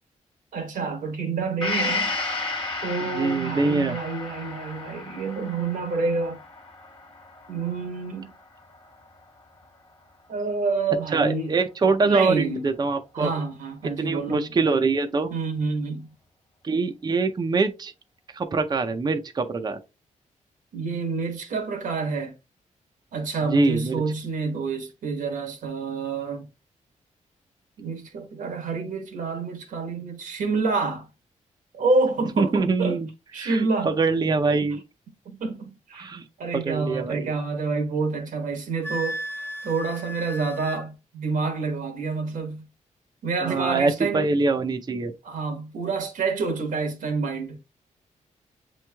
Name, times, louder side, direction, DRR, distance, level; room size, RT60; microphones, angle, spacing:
voice 1, 0.5-2.2 2.8-6.4 7.5-8.3 10.3-11.5 12.0-12.7 13.1-14.4 15.3-16.1 20.7-22.3 23.1-26.5 27.8-31.1 31.7-33.0 33.3-34.0 35.2-36.1 36.4-42.6 43.2-44.3 45.2-47.6, right 4 dB, 85° right, 1.1 m, -28 dB
Gong, 1.6-9.2 9.6-9.7, left 3 dB, 35° left, 1.2 m, -33 dB
voice 2, 3.0-4.0 11.1-13.3 14.0-15.3 16.6-17.9 18.3-19.8 23.5-24.0 32.4-33.1 33.4-34.8 36.0-36.3 36.5-37.3 43.4-45.1, right 3 dB, 30° right, 0.5 m, -24 dB
Wind instrument woodwind instrument, 38.8-40.8, equal, 15° left, 0.6 m, -34 dB
7.6 x 3.1 x 2.2 m
cardioid pair, 85°, 13 cm